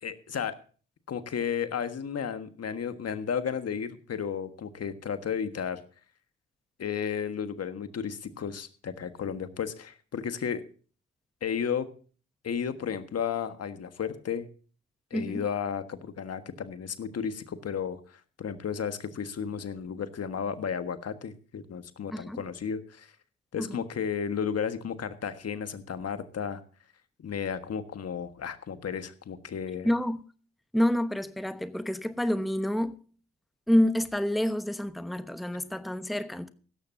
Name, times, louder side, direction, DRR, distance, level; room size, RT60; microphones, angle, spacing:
voice 1, 0.0-0.6 1.1-5.8 6.8-10.6 11.4-11.9 12.4-14.5 15.1-23.1 23.5-26.6 27.2-29.9, left 7 dB, 50° left, 1.5 m, -33 dB
voice 2, 15.1-15.5 22.1-22.4 23.6-23.8 29.8-30.2 30.7-33.0 33.7-36.5, equal, ahead, 1.0 m, -28 dB
16.5 x 14.0 x 2.7 m
hypercardioid pair, 40°, 31 cm